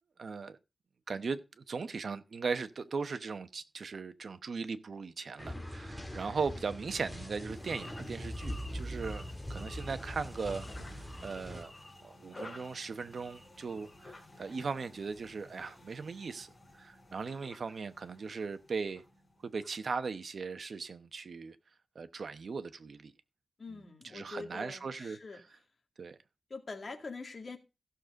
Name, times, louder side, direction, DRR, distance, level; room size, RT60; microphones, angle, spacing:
voice 1, 0.2-0.6 1.1-9.2 9.5-11.7 12.0-19.0 19.4-21.6 21.9-23.1 23.7-23.8 24.1-25.2 26.0-26.2, right 5 dB, 65° right, 0.9 m, -38 dB
sound 1, 5.4-11.6, equal, 5° left, 2.1 m, -42 dB
sound 2, 7.5-19.8, left 2 dB, 25° left, 4.3 m, -53 dB
voice 2, 23.6-25.4 26.5-27.6, left 3 dB, 45° left, 2.1 m, -44 dB
15.5 x 6.7 x 3.7 m
wide cardioid pair, 120°, 0 cm